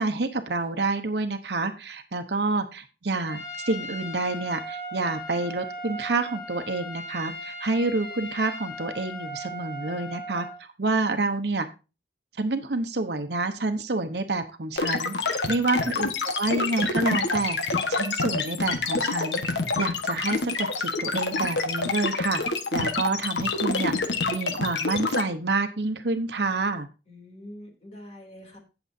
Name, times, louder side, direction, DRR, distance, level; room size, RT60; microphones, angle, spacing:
voice 1, 0.0-11.7 12.4-17.6 17.9-19.4 19.8-22.4 22.7-23.9 24.3-26.9, right 3 dB, 70° right, 8 dB, 0.9 m, -28 dB
Trumpet, 3.3-10.6, equal, 65° left, 5.0 m, -37 dB
sound 1, 14.8-25.2, left 3 dB, 85° left, 1.3 m, -27 dB
voice 2, 27.1-28.6, left 1 dB, 35° left, 2 dB, 2.9 m, -46 dB
18.0 x 7.0 x 2.7 m, 0.31 s
head